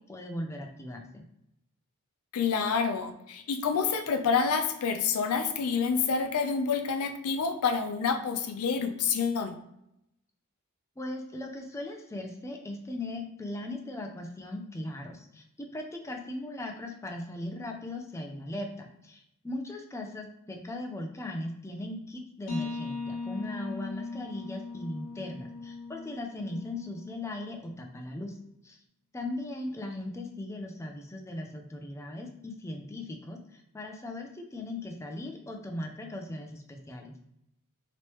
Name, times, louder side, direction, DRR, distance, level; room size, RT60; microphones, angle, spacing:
voice 1, 0.1-1.2 11.0-28.4 28.6-28.8 29.1-37.2, left 1 dB, 15° left, 3 dB, 0.4 m, -38 dB
voice 2, 2.3-9.5, left 5 dB, 80° left, 7 dB, 0.4 m, -28 dB
sound 1, 22.5-28.0, left 4 dB, 65° left, 0.8 m, -39 dB
3.1 x 3.0 x 3.0 m, 0.81 s
head